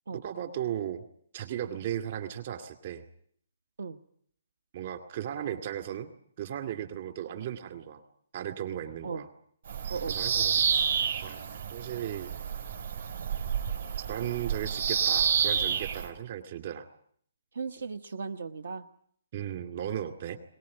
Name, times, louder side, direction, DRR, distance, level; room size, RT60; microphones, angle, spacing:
voice 1, 0.1-1.0 1.3-3.0 4.7-6.1 6.4-8.0 8.3-9.3 10.1-10.6 11.2-11.4 11.7-12.3 14.0-16.9 19.3-20.4, right 10 dB, 35° right, 7 dB, 2.2 m, -36 dB
Bird vocalization bird call bird song, 9.7-16.1, right 7 dB, 60° right, 3.4 m, -29 dB
voice 2, 17.5-18.8, right 5 dB, 80° right, 11 dB, 1.1 m, -36 dB
22.5 x 20.0 x 9.6 m, 0.63 s
hypercardioid pair, 175°, 0 cm